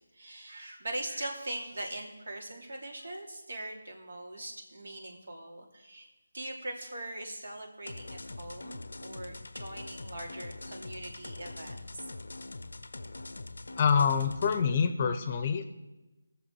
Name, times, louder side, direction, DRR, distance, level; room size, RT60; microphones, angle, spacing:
voice 1, 0.1-6.1 6.3-12.0, right 1 dB, 70° right, 1 dB, 2.8 m, -41 dB
sound 1, 7.9-14.6, left 2 dB, 85° left, 0.6 m, -43 dB
voice 2, 13.8-15.6, left 6 dB, 25° left, 10 dB, 0.7 m, -26 dB
19.0 x 7.0 x 4.7 m, 1.1 s
figure-of-eight pair, 170°, 0 cm